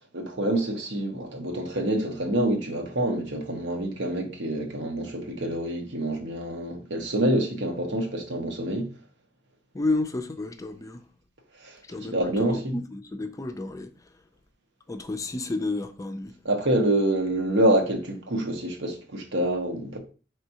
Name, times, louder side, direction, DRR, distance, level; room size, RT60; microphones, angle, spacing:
voice 1, 0.1-8.9 11.6-11.8 12.0-12.7 16.4-20.0, right 1 dB, 85° right, 1.0 m, -26 dB
voice 2, 9.7-11.0 11.9-14.2 14.9-16.3, left 2 dB, 20° left, 0.4 m, -31 dB
4.5 x 3.3 x 2.8 m
head